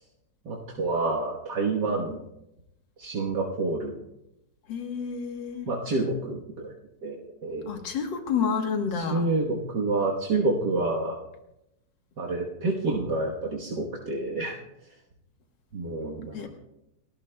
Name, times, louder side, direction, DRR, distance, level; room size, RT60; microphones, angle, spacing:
voice 1, 0.5-2.2 3.0-4.0 5.7-6.7 7.0-7.8 8.9-11.2 12.2-14.6 15.7-16.5, right 3 dB, 70° right, -3 dB, 1.9 m, -28 dB
voice 2, 4.7-5.7 7.7-9.3 16.3-16.5, left 6 dB, 85° left, 4 dB, 2.0 m, -29 dB
29.5 x 13.0 x 2.2 m, 0.88 s
omnidirectional pair, 1.9 m